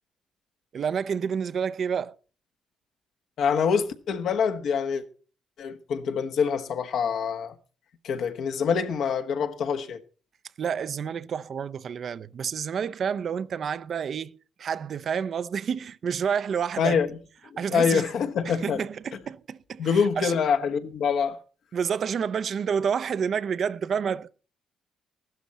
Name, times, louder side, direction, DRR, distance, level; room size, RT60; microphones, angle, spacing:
voice 1, 0.7-2.1 10.6-14.3 14.6-17.0 17.6-18.0 18.5-20.3 21.7-24.3, right 7 dB, 55° right, 0.6 m, -29 dB
voice 2, 3.4-5.0 5.6-7.5 8.0-10.0 16.8-17.1 17.5-18.8 19.8-21.4, left 6 dB, 70° left, 1.3 m, -25 dB
15.0 x 12.5 x 4.2 m
cardioid pair, 90°, 0 cm